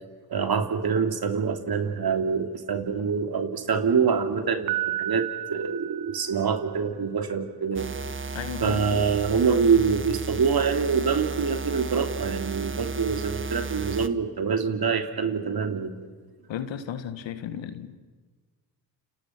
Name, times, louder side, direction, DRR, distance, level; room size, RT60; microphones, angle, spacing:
voice 1, 0.3-7.9 8.6-16.0, right 6 dB, 45° right, 6 dB, 2.9 m, -25 dB
Piano, 4.7-6.8, right 15 dB, 90° right, 0.7 m, -32 dB
sound 1, 7.7-14.1, right 4 dB, 25° right, 1.4 m, -34 dB
voice 2, 8.3-9.0 16.5-18.0, left 9 dB, 65° left, 12 dB, 1.8 m, -35 dB
29.5 x 28.0 x 6.1 m, 1.4 s
hypercardioid pair, 40°, 49 cm